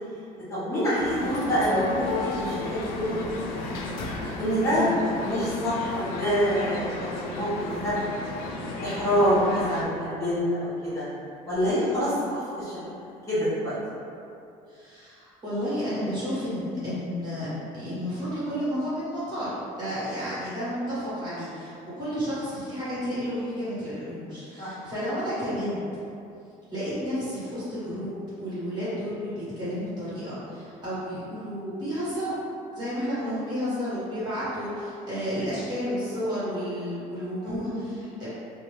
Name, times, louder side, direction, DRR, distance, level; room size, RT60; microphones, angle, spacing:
voice 1, 0.5-3.9 4.4-5.0 5.2-8.0 8.8-11.0 11.4-12.9 13.3-13.7 24.6-24.7 33.1-33.5 37.4-37.7, equal, 20° left, -13 dB, 1.1 m, -26 dB
sound 1, 1.0-9.8, left 3 dB, 85° left, 0.4 m, -34 dB
voice 2, 14.7-17.5 17.7-25.8 26.7-32.3 32.7-38.4, equal, 30° right, -12 dB, 1.4 m, -31 dB
2.7 x 2.0 x 3.2 m, 2.6 s
cardioid pair, 135°, 15 cm